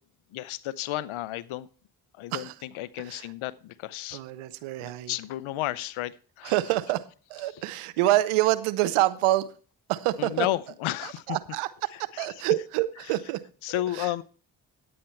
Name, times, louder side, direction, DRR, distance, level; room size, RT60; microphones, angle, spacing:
voice 1, 0.3-1.7 2.2-4.2 4.8-6.5 10.2-11.2 12.1-12.3 13.6-14.2, left 15 dB, 80° left, 0.8 m, -32 dB
voice 2, 3.0-3.3 4.1-5.1 6.4-9.5 9.9-10.5 11.0-11.7 12.0-13.4 13.9-14.1, right 16 dB, 90° right, 0.8 m, -27 dB
10.5 x 8.7 x 4.5 m
hypercardioid pair, 40°, 49 cm